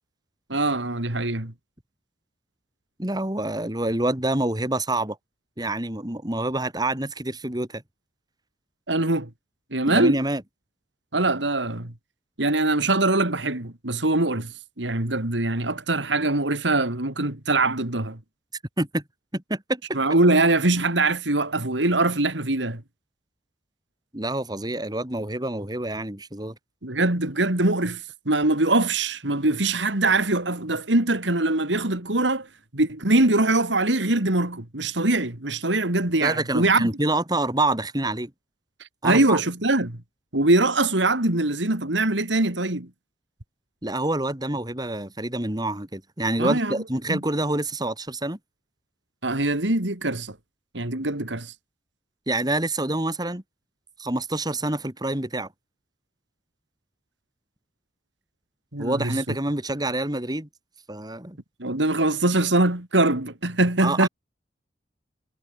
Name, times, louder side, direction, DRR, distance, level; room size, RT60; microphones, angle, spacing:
voice 1, 0.5-1.5 8.9-9.3 9.7-10.2 11.1-11.9 12.4-18.2 19.9-22.8 26.8-32.5 32.7-36.9 39.0-40.0 40.3-42.9 46.4-46.7 47.1-47.2 49.2-50.3 50.7-51.5 58.7-59.3 61.6-64.1, right 2 dB, 85° right, 3.2 m, -23 dB
voice 2, 3.0-5.2 5.6-7.8 9.8-10.4 18.8-19.0 19.3-19.8 24.1-26.5 36.2-38.3 39.0-39.4 43.8-48.4 52.3-53.4 54.0-55.5 58.8-60.5 60.9-61.4 63.8-64.1, right 2 dB, 20° right, 3.0 m, -27 dB
head